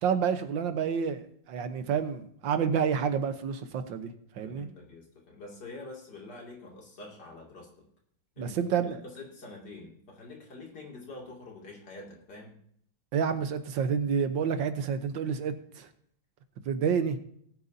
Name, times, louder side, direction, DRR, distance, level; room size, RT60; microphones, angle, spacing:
voice 1, 0.0-4.7 8.4-9.0 13.1-15.9 16.6-17.2, right 7 dB, 80° right, 9 dB, 1.7 m, -29 dB
voice 2, 4.4-7.7 8.4-8.6 8.9-12.6, left 2 dB, 60° left, -1 dB, 3.1 m, -46 dB
19.0 x 9.0 x 2.7 m, 0.67 s
omnidirectional pair, 2.1 m